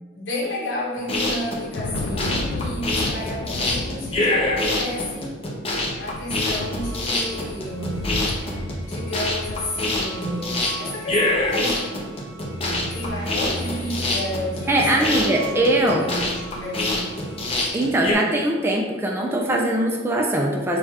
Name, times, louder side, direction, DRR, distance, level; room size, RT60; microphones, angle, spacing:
voice 1, 0.1-5.4 6.0-8.0 8.9-12.0 12.9-15.4 15.8-17.2, left 1 dB, 65° left, -4 dB, 1.1 m, -31 dB
sound 1, 1.0-18.1, left 2 dB, 30° left, 0.7 m, -25 dB
Thunder, 1.2-10.6, left 2 dB, 80° left, 0.4 m, -33 dB
sound 2, 6.5-17.7, right 1 dB, 60° right, 0.5 m, -37 dB
voice 2, 14.7-16.0 17.7-20.8, right 1 dB, 10° right, 0 dB, 0.3 m, -21 dB
6.4 x 2.3 x 2.8 m, 1.3 s
head